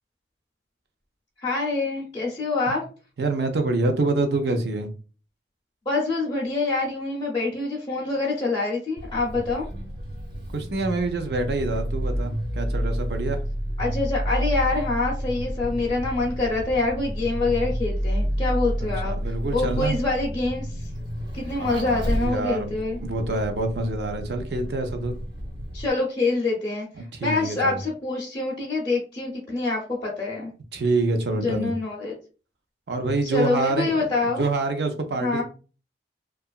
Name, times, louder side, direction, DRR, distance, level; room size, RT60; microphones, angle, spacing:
voice 1, 1.4-2.8 5.9-9.7 13.8-19.1 19.5-20.7 21.3-23.0 25.7-26.9 27.2-30.5 31.4-32.1 33.2-34.4 35.2-35.4, left 3 dB, 30° left, 0.5 m, -26 dB
voice 2, 3.2-4.9 10.5-13.4 18.8-20.0 21.6-25.1 27.1-27.8 30.7-31.7 32.9-35.4, right 2 dB, 70° right, 0.5 m, -26 dB
Vehicle, 9.0-25.9, equal, 50° right, 1.2 m, -30 dB
2.8 x 2.3 x 2.3 m
head